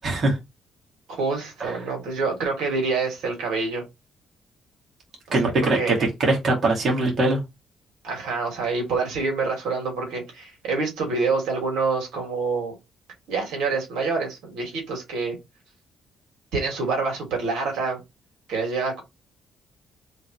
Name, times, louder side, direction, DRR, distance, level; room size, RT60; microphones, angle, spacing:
voice 1, 0.0-0.4 1.6-1.7 5.3-7.4, right 2 dB, 50° right, 2.0 m, -22 dB
voice 2, 1.1-3.8 5.6-5.9 8.0-12.7 13.3-15.4 16.5-18.0 18.5-19.0, right 4 dB, 85° right, 2.4 m, -26 dB
3.9 x 3.8 x 3.2 m
cardioid pair, 90°, 0 cm